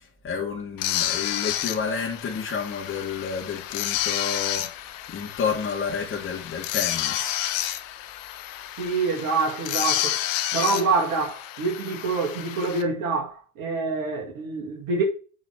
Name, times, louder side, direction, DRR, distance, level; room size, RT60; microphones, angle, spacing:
voice 1, 0.0-7.5, left 6 dB, 30° left, 2.6 m, -30 dB
sound 1, 0.8-12.8, left 12 dB, 65° left, 1.2 m, -30 dB
voice 2, 8.8-10.2 10.5-15.0, right 4 dB, 50° right, 2.5 m, -26 dB
7.8 x 4.9 x 6.1 m
hypercardioid pair, 75°, 42 cm